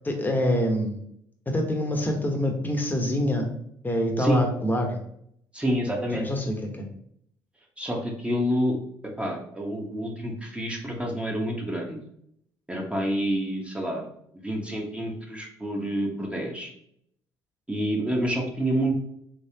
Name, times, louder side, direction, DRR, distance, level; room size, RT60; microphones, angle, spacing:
voice 1, 0.0-1.0 1.5-3.5 3.8-5.0 6.1-6.9, equal, 20° left, 3 dB, 1.0 m, -25 dB
voice 2, 5.5-6.3 7.8-12.0 12.7-14.0 14.3-16.7 17.7-18.9, equal, 10° right, 0 dB, 1.1 m, -28 dB
3.3 x 3.2 x 2.8 m, 0.70 s
hypercardioid pair, 55°, 10 cm